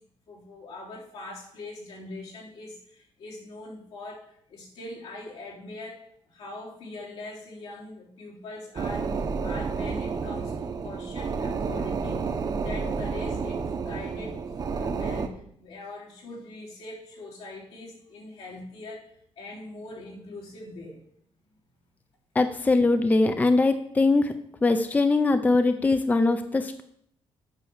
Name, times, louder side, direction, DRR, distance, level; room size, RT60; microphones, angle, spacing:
voice 1, 0.3-19.1 19.4-21.0, left 2 dB, 80° left, -4 dB, 3.8 m, -42 dB
sound 1, 8.7-15.3, right 5 dB, 40° right, 0.9 m, -30 dB
voice 2, 22.4-24.3 24.6-26.8, left 3 dB, 15° left, 9 dB, 0.5 m, -22 dB
8.8 x 5.7 x 7.2 m, 0.67 s
cardioid pair, 145°, 10 cm